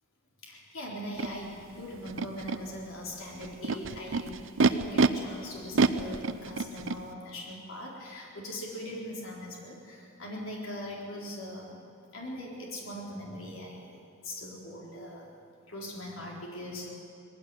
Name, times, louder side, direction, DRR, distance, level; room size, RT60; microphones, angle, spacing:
voice 1, 0.4-4.4 4.7-11.8 12.1-14.0 14.2-15.3 15.7-16.9, left 1 dB, 85° left, -3 dB, 4.1 m, -41 dB
Animal, 1.2-1.3 2.1-2.6 3.4-5.1 5.7-7.0, right 4 dB, 70° right, 0.8 m, -26 dB
20.5 x 16.5 x 9.9 m, 2.5 s
head